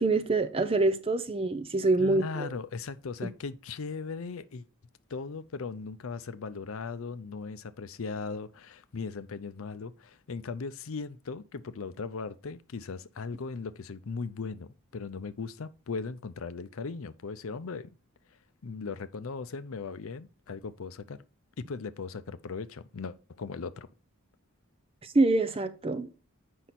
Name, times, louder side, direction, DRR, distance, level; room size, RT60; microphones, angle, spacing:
voice 1, 0.0-2.5 25.0-26.1, right 2 dB, 25° right, 0.5 m, -26 dB
voice 2, 2.0-4.6 5.1-17.9 18.6-21.2 21.6-23.9, left 4 dB, 75° left, 0.5 m, -38 dB
7.6 x 5.5 x 4.2 m
head